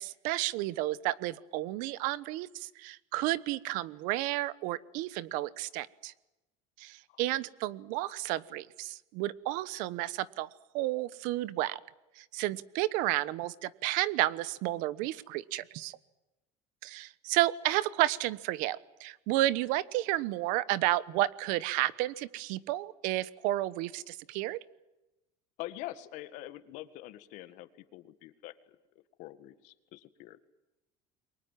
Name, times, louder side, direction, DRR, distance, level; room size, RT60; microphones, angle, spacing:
voice 1, 0.0-6.1 6.8-10.5 10.7-11.8 12.2-16.0 16.8-24.6, right 16 dB, 70° right, 18 dB, 1.1 m, -32 dB
voice 2, 25.6-28.5 29.2-30.4, left 15 dB, 60° left, 11 dB, 1.9 m, -44 dB
29.5 x 23.0 x 7.6 m, 1.0 s
cardioid pair, 155°, 14 cm